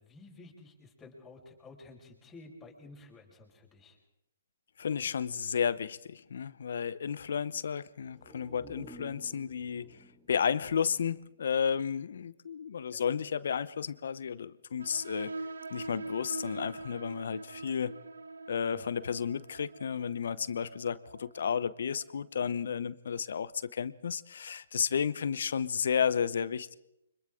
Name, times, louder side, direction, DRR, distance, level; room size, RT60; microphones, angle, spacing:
voice 1, 0.0-4.0 12.9-13.0 18.7-18.9, left 3 dB, 15° left, -1 dB, 5.3 m, -52 dB
voice 2, 4.8-10.0 10.3-15.3 15.7-18.0 18.5-26.8, left 7 dB, 65° left, 18 dB, 0.8 m, -32 dB
sound 1, 8.0-11.7 12.1-12.2, equal, 10° right, 2.7 m, -54 dB
sound 2, 14.8-22.1, right 3 dB, 80° right, 1.1 m, -44 dB
29.5 x 25.0 x 3.8 m, 0.85 s
hypercardioid pair, 135°, 0 cm